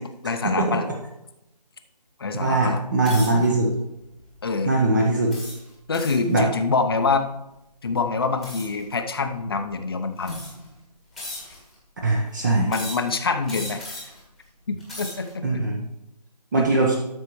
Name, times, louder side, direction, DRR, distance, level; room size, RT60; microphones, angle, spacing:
voice 1, 0.2-0.9 2.2-2.8 4.4-4.7 5.9-7.3 7.8-10.4 12.7-13.8 14.7-15.6 16.6-17.0, left 4 dB, 35° left, 7 dB, 0.7 m, -25 dB
voice 2, 2.4-3.7 4.7-5.3 6.3-6.4 12.0-12.7 15.4-15.8 16.5-17.0, right 2 dB, 30° right, -1 dB, 0.9 m, -21 dB
sound 1, 3.0-3.5 4.1-4.4 5.3-6.3 8.4-8.8 9.7-9.8 10.2-10.7 11.2-11.7 12.7-13.1 13.5-14.2 14.7-15.3, left 1 dB, ahead, 1.4 m, -37 dB
12.0 x 6.5 x 3.1 m, 0.88 s
figure-of-eight pair, 160°, 21 cm